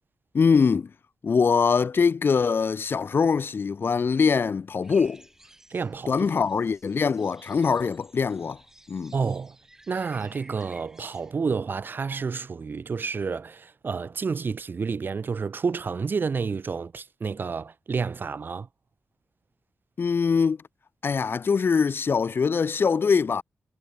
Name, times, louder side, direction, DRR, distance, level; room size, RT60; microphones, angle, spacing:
voice 1, 0.3-0.9 1.2-5.2 6.1-8.6 8.9-9.1 20.0-20.6 21.0-23.4, left 5 dB, 45° left, 1.6 m, -23 dB
sound 1, 4.8-11.3, right 1 dB, 10° right, 6.1 m, -54 dB
voice 2, 5.7-6.1 9.1-9.5 9.9-18.7, right 5 dB, 40° right, 1.1 m, -30 dB
wide cardioid pair, 170°, 5 cm